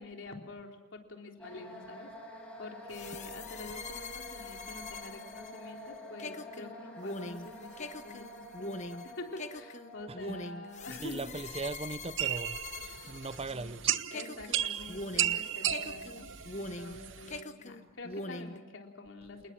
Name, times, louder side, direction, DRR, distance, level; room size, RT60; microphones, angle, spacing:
voice 1, 0.0-11.2 13.5-13.8 14.1-16.3 16.5-19.5, left 2 dB, 70° left, 3.7 m, -47 dB
sound 1, 1.4-13.3, left 1 dB, 5° left, 6.2 m, -49 dB
sound 2, 2.9-13.8 14.1-17.0 17.3-18.6, left 2 dB, 35° left, 1.1 m, -43 dB
voice 2, 10.1-10.4 10.9-14.0, right 3 dB, 30° right, 0.8 m, -40 dB
sound 3, 12.2-17.4, right 11 dB, 65° right, 0.9 m, -34 dB
29.0 x 19.5 x 6.1 m
head